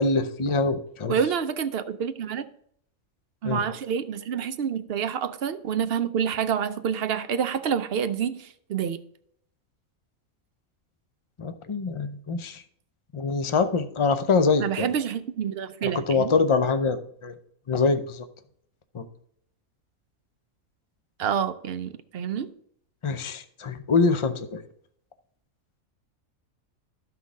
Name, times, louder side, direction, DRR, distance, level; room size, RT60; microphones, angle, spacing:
voice 1, 0.0-1.2 3.4-3.6 11.4-12.6 13.1-14.9 15.8-17.3 17.7-18.3 18.9-19.1 23.0-24.6, left 4 dB, 45° left, 9 dB, 0.4 m, -24 dB
voice 2, 1.1-2.5 3.4-9.0 14.6-16.3 21.2-22.5, right 8 dB, 60° right, 11 dB, 0.7 m, -28 dB
12.5 x 5.9 x 3.6 m, 0.67 s
omnidirectional pair, 1.5 m